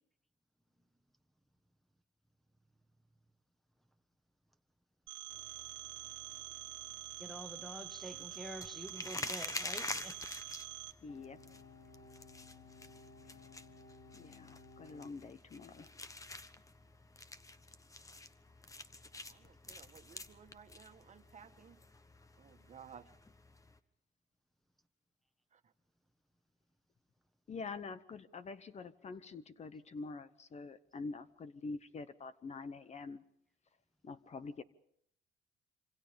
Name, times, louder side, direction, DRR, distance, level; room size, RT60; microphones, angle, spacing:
Telephone, 5.1-10.9, right 17 dB, 85° right, 1.4 m, -46 dB
sound 1, 5.3-23.8, left 2 dB, 15° left, 1.2 m, -49 dB
voice 1, 7.2-10.2, equal, ahead, 1.5 m, -47 dB
voice 2, 11.0-11.4 14.1-16.0 27.5-33.2 34.0-34.6, left 4 dB, 35° left, 1.0 m, -46 dB
sound 2, 11.1-15.2, left 3 dB, 65° left, 2.9 m, -57 dB
voice 3, 19.3-21.8 22.4-23.1 25.5-25.7, right 7 dB, 40° right, 1.7 m, -57 dB
27.0 x 26.0 x 5.2 m
cardioid pair, 110°, 19 cm